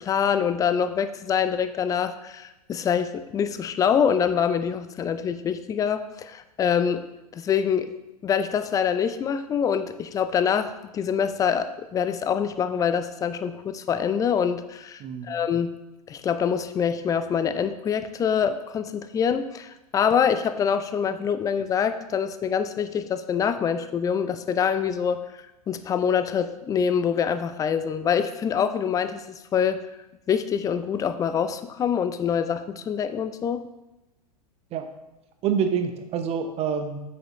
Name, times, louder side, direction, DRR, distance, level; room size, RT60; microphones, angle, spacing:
voice 1, 0.0-7.0 7.3-7.9 8.2-15.7 16.1-25.2 25.7-29.8 30.3-33.6, left 7 dB, 15° left, 11 dB, 0.4 m, -25 dB
voice 2, 15.0-15.3 34.7-34.9 35.4-37.0, right 7 dB, 30° right, 7 dB, 0.9 m, -27 dB
7.8 x 6.3 x 3.0 m, 0.97 s
figure-of-eight pair, 95°, 20 cm